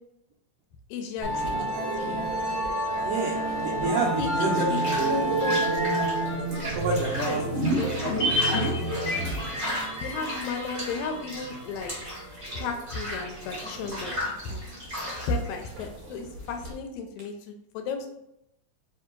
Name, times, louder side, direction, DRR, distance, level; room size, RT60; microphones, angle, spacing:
voice 1, 0.9-1.7 4.2-4.8 5.1-5.6 7.1-7.4 8.0-8.3 10.0-11.9 12.6-14.1 14.4-14.6 15.3-18.1, left 4 dB, 80° left, 5 dB, 1.8 m, -33 dB
Musical instrument, 1.2-16.7, right 2 dB, 60° right, 1.4 m, -30 dB
sound 1, 2.0-16.7, equal, 25° right, 0.6 m, -38 dB
voice 2, 3.0-4.7 5.0-5.4 6.5-7.5 7.8-8.9 13.8-14.2, right 3 dB, 80° right, -3 dB, 1.4 m, -31 dB
sound 2, 7.4-11.9 12.2-12.3, left 1 dB, 50° left, 0.6 m, -30 dB
4.5 x 2.8 x 3.7 m, 0.84 s
omnidirectional pair, 3.4 m